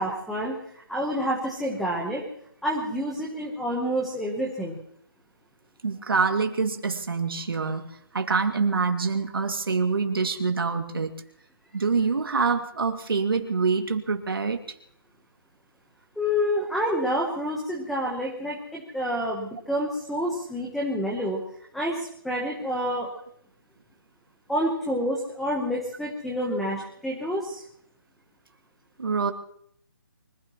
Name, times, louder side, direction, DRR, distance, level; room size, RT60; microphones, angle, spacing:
voice 1, 0.0-2.2 2.6-4.8 16.2-21.4 21.7-23.1 24.5-27.6, equal, ahead, -3 dB, 1.0 m, -28 dB
voice 2, 5.8-11.1 11.7-14.6 29.0-29.3, right 4 dB, 70° right, 5 dB, 2.4 m, -25 dB
24.5 x 16.0 x 3.1 m, 0.67 s
hypercardioid pair, 175°, 12 cm